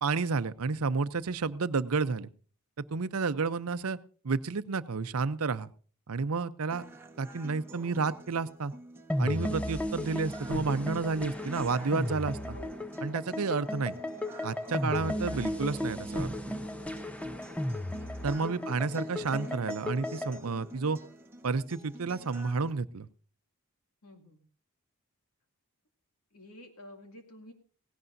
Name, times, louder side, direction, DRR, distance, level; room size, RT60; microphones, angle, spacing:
voice 1, 0.0-2.3 2.8-4.0 4.2-5.7 6.1-6.8 7.2-8.7 9.2-12.6 13.0-13.9 14.4-16.3 18.2-21.0 21.4-23.1, right 4 dB, 75° right, 14 dB, 0.6 m, -31 dB
sound 1, 6.7-22.7, right 1 dB, 10° right, 1.2 m, -49 dB
sound 2, 9.1-20.4, left 1 dB, 5° left, 0.6 m, -35 dB
voice 2, 12.5-12.9 18.6-19.0 19.9-20.1 24.0-24.5 26.3-27.5, left 1 dB, 75° left, 4 dB, 2.5 m, -51 dB
17.0 x 17.0 x 2.7 m, 0.41 s
head